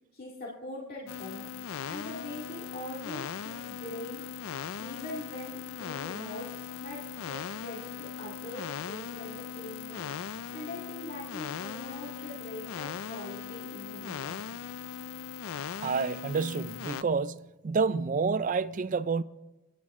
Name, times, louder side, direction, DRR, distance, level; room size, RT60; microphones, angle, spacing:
voice 1, 0.1-4.2 4.8-14.4, left 1 dB, 45° left, 2.1 m, -42 dB
sound 1, 1.1-17.0, left 7 dB, 70° left, 0.4 m, -39 dB
voice 2, 15.8-19.2, right 5 dB, 35° right, 0.4 m, -29 dB
26.0 x 10.5 x 3.6 m
head